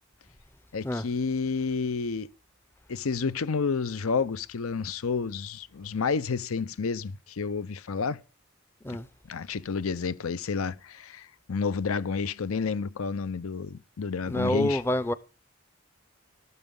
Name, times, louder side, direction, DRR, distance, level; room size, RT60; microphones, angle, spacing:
voice 1, 0.7-2.3 2.9-8.2 8.9-9.0 9.3-14.8, left 5 dB, 80° left, 0.6 m, -30 dB
voice 2, 14.3-15.1, left 1 dB, 10° left, 0.5 m, -27 dB
13.0 x 12.5 x 3.8 m
head